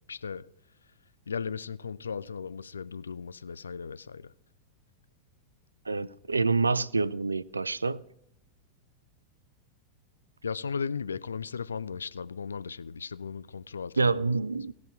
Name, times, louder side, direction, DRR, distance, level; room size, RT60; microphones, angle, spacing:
voice 1, 0.1-0.5 1.3-4.2 10.4-14.2, left 6 dB, 75° left, 0.3 m, -36 dB
voice 2, 5.9-8.0 14.0-14.7, right 4 dB, 80° right, 0.3 m, -27 dB
17.5 x 6.1 x 4.8 m
figure-of-eight pair, 90°, 0 cm